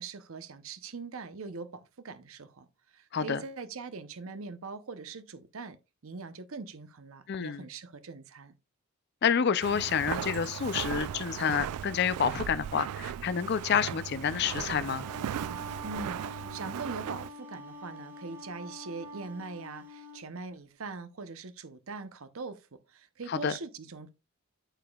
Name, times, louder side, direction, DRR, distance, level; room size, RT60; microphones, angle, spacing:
voice 1, 0.0-5.8 6.0-8.5 15.8-24.1, right 4 dB, 65° right, 0.7 m, -42 dB
voice 2, 7.3-7.6 9.2-15.1 23.3-23.5, left 7 dB, 45° left, 0.4 m, -29 dB
Walk footsteps, 9.6-17.3, right 9 dB, 90° right, 0.3 m, -37 dB
Wind instrument woodwind instrument, 15.0-20.2, right 1 dB, 10° right, 1.5 m, -45 dB
9.0 x 6.8 x 2.3 m
head